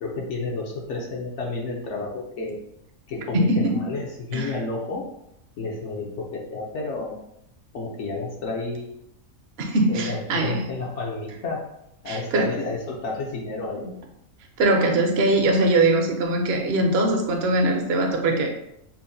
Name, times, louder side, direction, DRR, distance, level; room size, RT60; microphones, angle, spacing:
voice 1, 0.0-2.6 3.1-5.1 5.6-7.2 7.7-9.0 9.9-11.7 12.0-13.9, left 3 dB, 65° left, -1 dB, 0.8 m, -31 dB
voice 2, 3.3-3.8 4.3-4.6 9.6-10.7 12.1-12.5 14.6-18.5, right 2 dB, 60° right, 2 dB, 0.7 m, -21 dB
5.6 x 2.1 x 2.6 m, 0.80 s
omnidirectional pair, 1.5 m